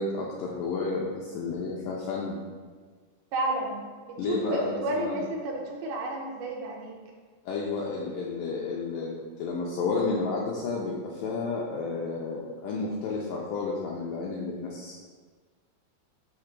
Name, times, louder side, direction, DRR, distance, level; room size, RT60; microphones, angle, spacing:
voice 1, 0.0-2.4 4.2-5.3 7.5-15.0, left 4 dB, 90° left, -3 dB, 1.9 m, -31 dB
voice 2, 3.3-6.9, right 1 dB, 75° right, 0 dB, 2.6 m, -31 dB
6.9 x 2.9 x 5.8 m, 1.5 s
omnidirectional pair, 4.5 m